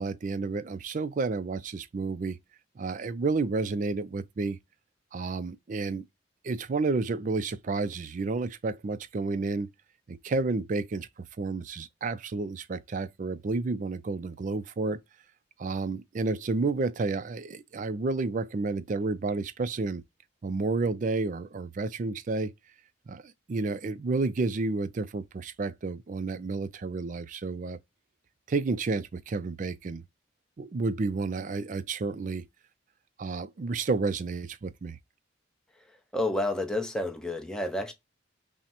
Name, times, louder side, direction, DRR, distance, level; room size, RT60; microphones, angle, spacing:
voice 1, 0.0-2.4 2.8-4.6 5.1-6.0 6.4-9.7 10.1-11.1 11.4-15.0 15.6-20.0 20.4-22.5 23.1-27.8 28.5-30.0 30.6-32.4 33.2-35.0, right 3 dB, 40° right, 0.3 m, -31 dB
voice 2, 36.1-37.9, left 1 dB, 5° left, 0.6 m, -30 dB
5.7 x 2.1 x 2.8 m
head